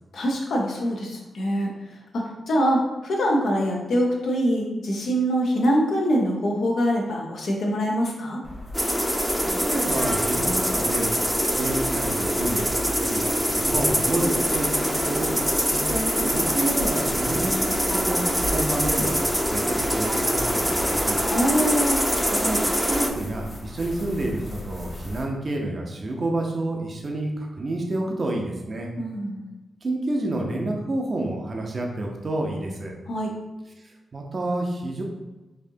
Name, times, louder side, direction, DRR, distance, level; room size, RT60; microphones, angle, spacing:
voice 1, 0.1-1.7 2.1-8.4 21.3-22.0 29.0-29.4 33.1-33.3, equal, 75° left, -1 dB, 0.8 m, -24 dB
sound 1, 8.4-25.2, left 1 dB, 25° left, 1.2 m, -37 dB
sound 2, 8.7-23.1, equal, ahead, 0.6 m, -24 dB
voice 2, 9.4-11.1 11.5-21.2 22.3-28.9 29.8-32.9 33.8-35.0, right 2 dB, 50° right, 0 dB, 0.6 m, -29 dB
4.2 x 2.7 x 2.7 m, 1.1 s
supercardioid pair, 45°, 0 cm